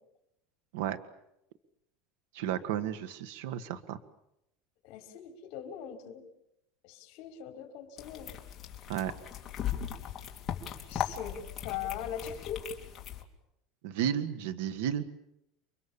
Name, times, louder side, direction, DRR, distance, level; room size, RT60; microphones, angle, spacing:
voice 1, 2.3-4.0 8.9-9.1 13.8-15.0, right 10 dB, 80° right, 11 dB, 1.8 m, -33 dB
voice 2, 4.8-6.2 6.8-8.3 10.9-11.4 11.6-12.7, left 10 dB, 55° left, 4 dB, 4.8 m, -40 dB
sound 1, 8.0-13.2, left 9 dB, 25° left, 3.2 m, -38 dB
30.0 x 24.0 x 7.3 m, 0.83 s
cardioid pair, 155°, 0 cm